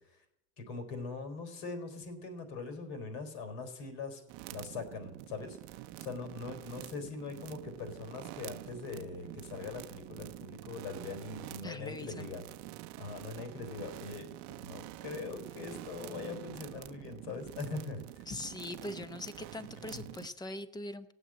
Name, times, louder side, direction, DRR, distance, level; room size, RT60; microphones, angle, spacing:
voice 1, 0.6-4.2 4.5-5.6 6.0-12.4 13.0-18.2 19.9-20.1, left 4 dB, 65° left, 7 dB, 4.1 m, -42 dB
sound 1, 4.3-20.3, right 17 dB, 55° right, 0.7 m, -47 dB
voice 2, 11.6-12.3 18.3-21.1, left 2 dB, 10° left, 13 dB, 0.8 m, -42 dB
16.0 x 8.1 x 8.8 m, 0.85 s
supercardioid pair, 120°, 33 cm